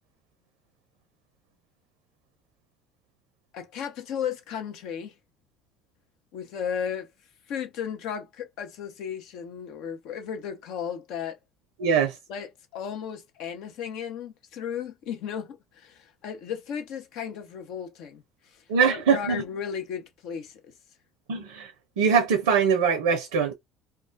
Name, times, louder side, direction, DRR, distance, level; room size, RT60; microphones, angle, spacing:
voice 1, 3.5-5.1 6.3-7.1 7.5-11.4 12.3-18.6 18.9-20.7, left 8 dB, 65° left, 0.7 m, -35 dB
voice 2, 11.8-12.1 18.7-19.4 21.3-21.7 22.0-23.5, right 6 dB, 80° right, 0.5 m, -22 dB
2.3 x 2.2 x 2.4 m
hypercardioid pair, 70°, 0 cm